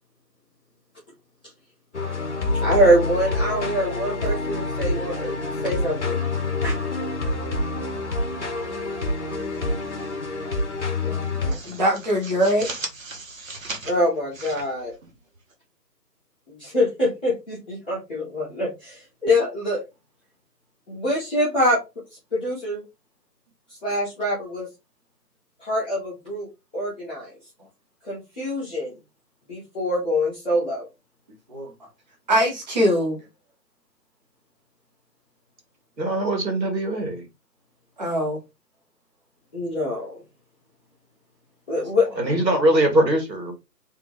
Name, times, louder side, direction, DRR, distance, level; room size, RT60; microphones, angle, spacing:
sound 1, 1.9-11.5, left 2 dB, 45° left, 0.8 m, -27 dB
voice 1, 2.5-5.4 5.6-6.2 6.6-6.8 13.8-14.9 16.5-19.8 20.9-21.8 22.3-22.8 23.8-24.7 25.6-26.5 26.7-27.3 28.0-28.9 29.5-30.8 39.5-40.1 41.7-42.2, equal, 5° left, 0.9 m, -24 dB
sound 2, 9.3-10.1 10.4-10.6 11.0-15.5, right 3 dB, 50° right, 1.1 m, -38 dB
voice 2, 11.0-12.8 31.5-31.7 32.3-33.2 38.0-38.4, equal, 25° right, 0.9 m, -23 dB
voice 3, 36.0-37.2 42.2-43.5, right 1 dB, 80° right, 2.2 m, -21 dB
3.6 x 3.4 x 3.1 m
figure-of-eight pair, 155°, 50 cm